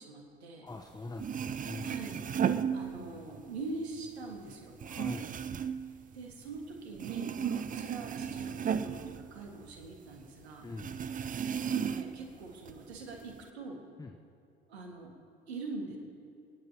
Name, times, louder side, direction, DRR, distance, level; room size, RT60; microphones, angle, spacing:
voice 1, 0.0-0.7 1.8-2.2 2.7-4.7 6.1-10.7 11.7-13.8 14.7-15.1 15.5-16.0, right 3 dB, 80° right, 1 dB, 1.9 m, -43 dB
voice 2, 0.6-2.0 4.9-5.3 10.6-11.0 14.0-14.1, left 3 dB, 10° left, 6 dB, 0.7 m, -43 dB
sound 1, 0.9-3.4 3.7-6.7 6.9-9.9 10.2-10.3 10.8-12.3 12.6-13.4, right 7 dB, 25° right, 0.5 m, -35 dB
29.0 x 10.5 x 2.9 m, 2.7 s
figure-of-eight pair, 60°, 31 cm